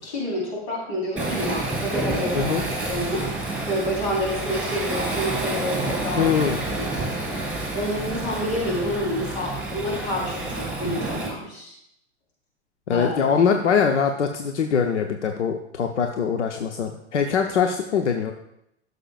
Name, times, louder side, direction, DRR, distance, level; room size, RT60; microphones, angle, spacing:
voice 1, 0.0-2.6 2.9-3.3 3.6-6.4 6.8-7.1 7.7-11.7 12.9-13.2, equal, 65° left, -3 dB, 3.9 m, -28 dB
Waves surf, 1.2-11.3, right 2 dB, 5° right, 3.8 m, -29 dB
voice 2, 2.3-2.7 6.1-6.6 12.9-18.3, left 6 dB, 80° left, 4 dB, 0.9 m, -22 dB
14.5 x 6.7 x 2.4 m, 0.76 s
figure-of-eight pair, 90°, 35 cm